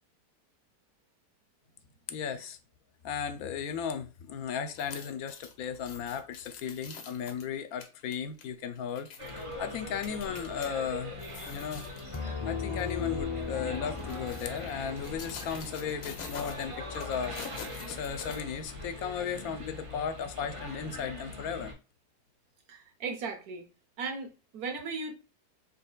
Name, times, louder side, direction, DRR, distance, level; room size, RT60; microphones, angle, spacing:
voice 1, 2.1-2.6 3.0-11.1 11.5-17.3 17.9-21.7, left 7 dB, 70° left, 1.0 m, -36 dB
sound 1, 4.7-10.7 11.1-12.3 12.7-12.9 13.7-18.9 19.3-19.4, left 6 dB, 90° left, 1.4 m, -47 dB
sound 2, 9.2-21.7, left 2 dB, 25° right, 0.8 m, -42 dB
Piano, 12.1-17.7, left 4 dB, 40° left, 0.4 m, -39 dB
voice 2, 22.7-23.7 24.0-25.1, right 4 dB, 70° right, 1.3 m, -37 dB
4.3 x 3.3 x 2.3 m
omnidirectional pair, 1.7 m